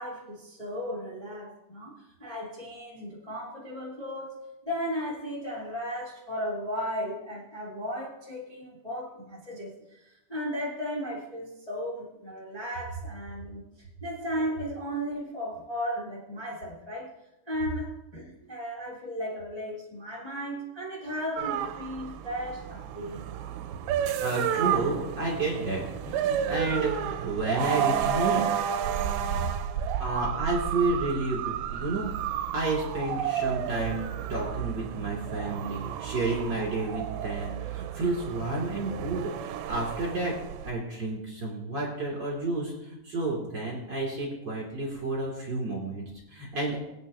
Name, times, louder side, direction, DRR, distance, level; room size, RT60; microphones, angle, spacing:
voice 1, 0.0-4.4 4.6-17.1 17.5-23.3, equal, 65° left, -6 dB, 0.4 m, -35 dB
sound 1, 21.4-40.7, right 9 dB, 85° right, 2.7 m, -31 dB
voice 2, 24.2-28.5 30.0-32.3 32.5-40.3 40.6-46.8, right 2 dB, 35° right, -3 dB, 2.0 m, -31 dB
21.0 x 8.8 x 2.7 m, 0.90 s
omnidirectional pair, 5.4 m